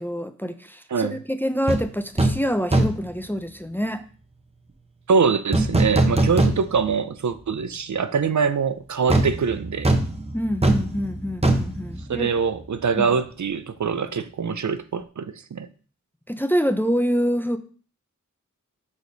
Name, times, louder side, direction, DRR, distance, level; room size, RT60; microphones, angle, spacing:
voice 1, 0.0-4.0 10.3-12.3 13.0-13.1 16.3-17.6, equal, 5° left, 0.5 m, -26 dB
sound 1, 1.7-1.8 2.2-2.4 2.7-3.1 5.5-7.0 7.3-7.4 9.1-12.8 13.0-13.2, right 1 dB, 20° right, 0.8 m, -22 dB
voice 2, 5.1-9.9 12.1-15.7, right 5 dB, 70° right, 0.5 m, -24 dB
4.8 x 4.2 x 5.2 m
wide cardioid pair, 65°, 30 cm